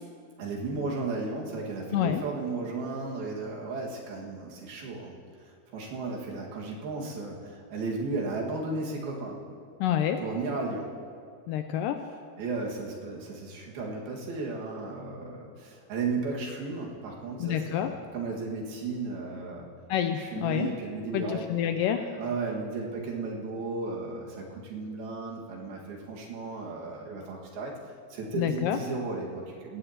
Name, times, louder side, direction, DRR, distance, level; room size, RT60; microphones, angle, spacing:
voice 1, 0.4-5.2 5.7-9.5 10.2-10.9 12.4-19.7 20.2-21.5 22.1-27.7 28.1-29.8, right 3 dB, 85° right, -2 dB, 3.7 m, -34 dB
voice 2, 1.9-2.2 9.8-10.2 11.5-12.1 17.4-17.9 19.9-20.7 21.1-22.1 28.4-28.8, left 10 dB, 85° left, 7 dB, 2.0 m, -28 dB
21.0 x 15.5 x 2.9 m, 2.3 s
omnidirectional pair, 4.2 m